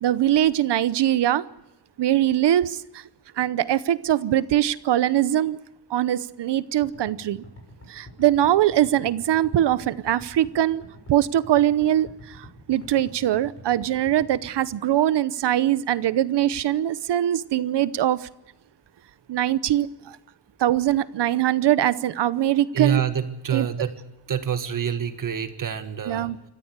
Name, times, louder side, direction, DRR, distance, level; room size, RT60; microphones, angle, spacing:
voice 1, 0.0-1.4 2.0-3.0 3.4-5.6 5.9-7.4 7.9-10.8 11.1-18.3 19.3-19.9 20.6-23.0 23.5-23.7 26.1-26.4, right 12 dB, 80° right, 16 dB, 0.9 m, -22 dB
sound 1, 6.8-14.8, equal, 35° left, 6.0 m, -46 dB
voice 2, 22.7-23.9 24.3-26.5, right 8 dB, 50° right, 8 dB, 1.7 m, -27 dB
26.5 x 14.5 x 8.2 m, 0.94 s
wide cardioid pair, 175°, 41 cm